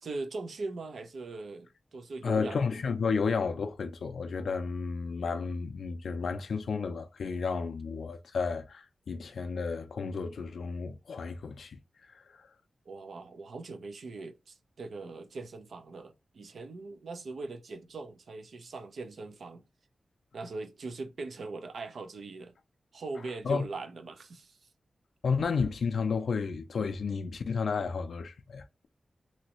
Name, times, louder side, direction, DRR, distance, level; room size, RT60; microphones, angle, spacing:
voice 1, 0.0-2.6 12.9-19.6 20.3-22.5 22.9-24.6, right 3 dB, 75° right, 0.5 m, -41 dB
voice 2, 2.2-11.8 12.1-12.4 23.4-23.6 25.2-28.6, left 5 dB, 75° left, 0.3 m, -32 dB
3.1 x 2.7 x 2.8 m
wide cardioid pair, 155°, 0 cm